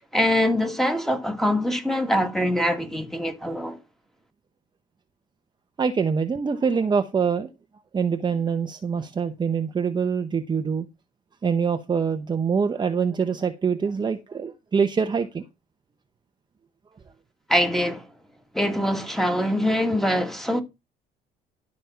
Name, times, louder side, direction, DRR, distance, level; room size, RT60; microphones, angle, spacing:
voice 1, 0.0-3.8 17.5-18.1 18.5-20.6, equal, ahead, 2.2 m, -23 dB
voice 2, 5.8-7.5 7.9-10.9 11.4-15.4, right 6 dB, 25° right, 0.9 m, -24 dB
12.5 x 5.3 x 5.7 m
cardioid pair, 110°, 17 cm